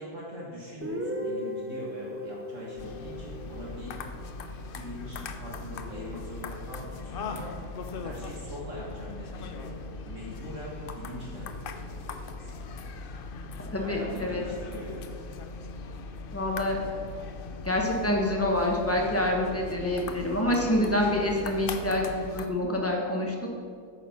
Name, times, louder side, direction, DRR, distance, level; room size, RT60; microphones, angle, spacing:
voice 1, 0.0-4.0 4.7-7.6 8.0-9.7 10.1-12.5 13.8-15.2, equal, 55° right, -4 dB, 1.8 m, -42 dB
Guitar, 0.8-4.6, equal, 15° right, 0.4 m, -37 dB
sound 1, 2.8-22.5, left 3 dB, 70° left, 0.5 m, -39 dB
voice 2, 13.7-14.4 16.3-16.8 17.6-23.5, left 1 dB, 10° left, -1 dB, 1.1 m, -27 dB
9.1 x 6.7 x 5.8 m, 2.3 s
omnidirectional pair, 1.6 m